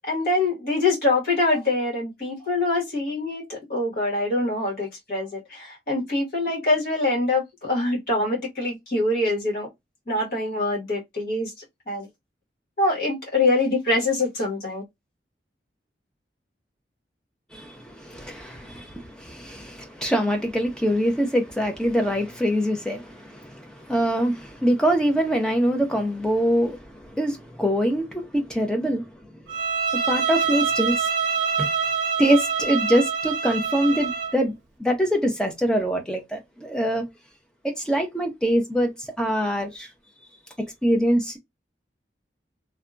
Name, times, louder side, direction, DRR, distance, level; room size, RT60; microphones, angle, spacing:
voice 1, 0.1-9.7 10.1-11.5 11.9-12.1 12.8-14.8, left 2 dB, 55° left, 1.3 m, -24 dB
voice 2, 17.5-29.1 29.3-29.4 30.1-31.1 31.6-31.7 32.2-34.5 34.8-37.0 37.6-39.9 40.8-41.4, equal, 5° left, 0.6 m, -24 dB
Bowed string instrument, 29.5-34.4, right 6 dB, 80° right, 0.6 m, -25 dB
2.7 x 2.2 x 2.3 m
head